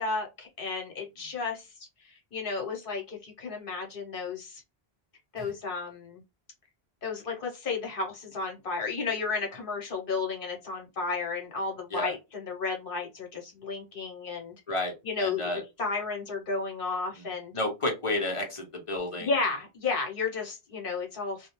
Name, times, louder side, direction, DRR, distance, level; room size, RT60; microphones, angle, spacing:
voice 1, 0.0-1.7 2.0-4.6 5.3-6.2 7.0-14.5 15.0-15.4 15.8-17.5 19.2-21.5, left 4 dB, 60° left, 0 dB, 1.0 m, -33 dB
voice 2, 14.7-15.6 17.2-17.3 17.5-19.3, left 2 dB, 35° left, 1 dB, 0.8 m, -31 dB
2.3 x 2.0 x 2.9 m, 0.24 s
omnidirectional pair, 1.0 m